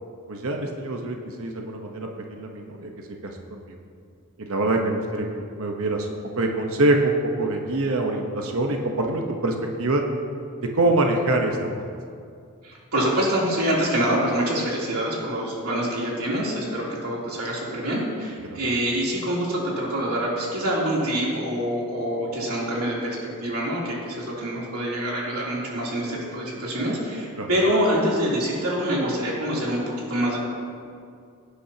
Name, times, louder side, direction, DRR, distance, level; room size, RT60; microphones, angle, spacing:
voice 1, 0.3-2.9 3.2-3.8 4.4-10.0 10.6-11.9 18.5-18.6 27.4-27.5, right 2 dB, 65° right, 2 dB, 1.0 m, -25 dB
voice 2, 12.6-23.2 23.4-30.4, equal, 80° right, -5 dB, 3.1 m, -25 dB
17.5 x 9.9 x 2.8 m, 2.3 s
head